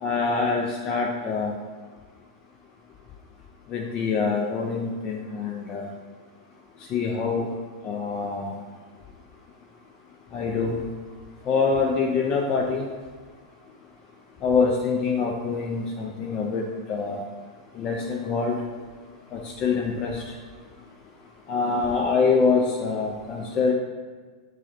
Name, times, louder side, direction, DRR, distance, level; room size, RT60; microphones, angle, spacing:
voice 1, 0.0-1.5 3.7-5.9 6.8-7.5 7.8-8.5 10.3-10.8 11.5-12.9 14.4-17.2 17.7-18.6 19.3-20.4 21.5-23.7, left 4 dB, 30° left, 0 dB, 0.3 m, -25 dB
6.0 x 2.0 x 2.4 m, 1.5 s
figure-of-eight pair, 95°, 3 cm